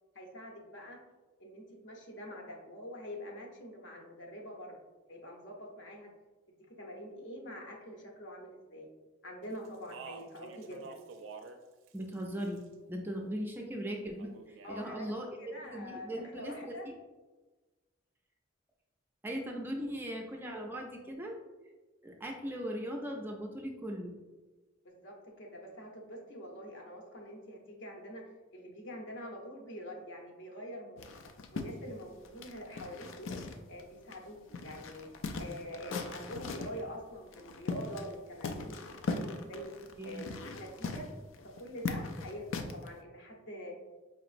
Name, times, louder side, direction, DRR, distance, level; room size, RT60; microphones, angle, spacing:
voice 1, 0.1-1.0 1.4-4.8 5.1-6.1 6.7-8.9 9.2-11.0 14.6-15.1 15.4-16.9 24.8-28.2 28.5-31.1 31.5-33.3 33.7-35.1 35.4-39.7 40.0-40.3 40.5-41.1 41.6-43.8, equal, 65° left, 0 dB, 0.9 m, -45 dB
Speech, 9.6-11.6 11.9-12.7 14.2-14.8, right 4 dB, 80° right, 0.4 m, -49 dB
voice 2, 11.9-15.3 15.7-16.9 19.2-21.4 22.0-24.1 40.0-40.3, equal, 10° right, 1 dB, 0.4 m, -39 dB
sound 1, 31.0-33.8 34.1-34.2 34.5-36.8 37.3-38.1 38.4-42.9, left 4 dB, 80° left, 0.4 m, -39 dB
5.0 x 2.9 x 2.5 m, 1.2 s
head